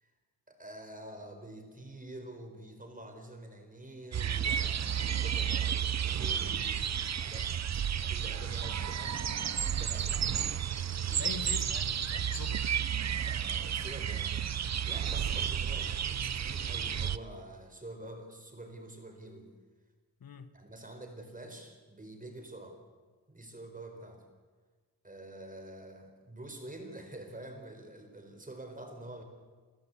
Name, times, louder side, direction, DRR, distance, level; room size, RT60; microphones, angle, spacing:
voice 1, 0.5-7.5 8.0-9.2 9.7-10.2 11.0-11.4 13.2-19.5 20.5-22.8 23.3-24.2 25.0-29.2, right 1 dB, 20° right, 4 dB, 4.7 m, -47 dB
sound 1, 4.1-17.2, right 8 dB, 45° right, 0.7 m, -32 dB
voice 2, 9.9-10.2 11.1-12.7 20.2-20.5, left 6 dB, 70° left, 11 dB, 1.3 m, -44 dB
30.0 x 13.0 x 8.5 m, 1.4 s
wide cardioid pair, 100°, 37 cm